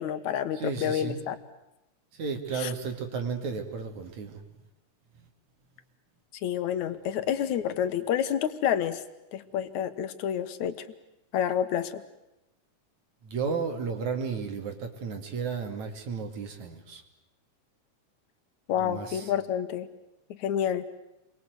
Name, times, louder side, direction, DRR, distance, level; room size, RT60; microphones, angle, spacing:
voice 1, 0.0-1.4 2.5-2.7 6.4-9.0 9.3-10.7 11.3-12.0 18.7-19.9 20.4-20.9, left 9 dB, 70° left, 11 dB, 2.6 m, -29 dB
voice 2, 0.5-1.3 2.1-4.4 13.2-17.0 18.8-19.3, right 5 dB, 65° right, 5 dB, 3.9 m, -33 dB
30.0 x 23.5 x 8.1 m, 0.92 s
omnidirectional pair, 3.6 m